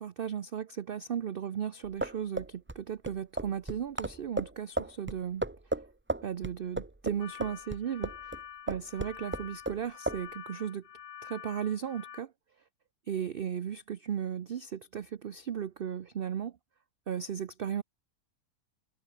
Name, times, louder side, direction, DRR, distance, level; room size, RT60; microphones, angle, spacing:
voice 1, 0.0-5.4 6.2-8.3 8.7-10.9 11.2-12.3 13.1-16.6 17.1-17.8, right 8 dB, 55° right, 0.6 m, -36 dB
sound 1, 1.8-8.4 8.7-9.8 10.1-10.2, right 2 dB, 15° right, 0.5 m, -34 dB
sound 2, 7.2-12.2, left 9 dB, 85° left, 1.7 m, -47 dB
omnidirectional pair, 1.7 m